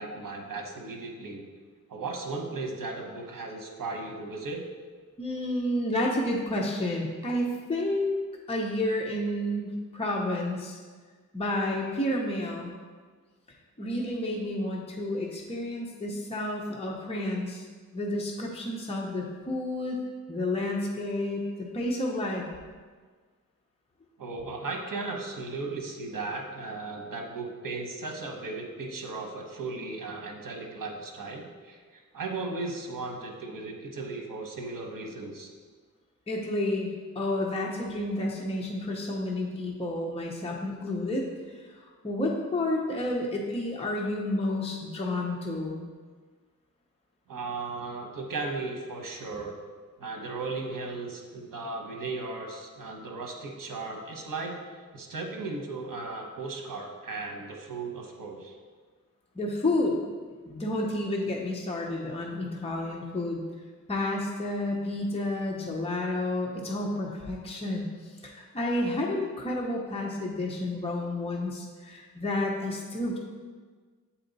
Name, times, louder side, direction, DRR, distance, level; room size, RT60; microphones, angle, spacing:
voice 1, 0.0-1.5 1.9-4.6 24.2-35.5 47.3-49.6 50.0-54.6 54.9-58.5, right 3 dB, 80° right, 2 dB, 1.1 m, -36 dB
voice 2, 5.2-8.2 8.5-10.8 11.3-12.7 13.8-17.7 17.9-20.0 20.3-22.4 36.3-45.8 59.3-60.0 60.5-63.4 63.9-73.2, left 1 dB, 20° left, -2 dB, 0.7 m, -30 dB
7.6 x 4.2 x 4.0 m, 1.5 s
wide cardioid pair, 115°, 32 cm